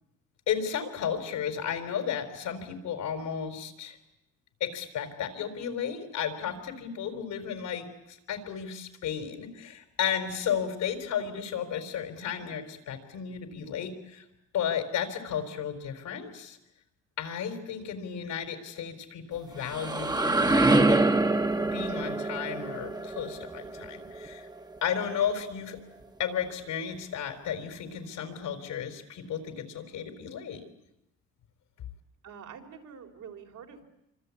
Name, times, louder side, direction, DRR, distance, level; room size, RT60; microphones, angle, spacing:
voice 1, 0.5-4.0 4.6-14.2 14.5-16.6 17.2-20.7 21.7-24.5 24.8-25.8 26.2-30.6, left 8 dB, 80° left, 7 dB, 4.4 m, -33 dB
sound 1, 19.4-25.1, right 2 dB, 15° right, 1.3 m, -26 dB
voice 2, 32.2-33.8, right 7 dB, 75° right, 2 dB, 4.2 m, -46 dB
26.5 x 25.5 x 8.5 m, 0.85 s
cardioid pair, 90°, 30 cm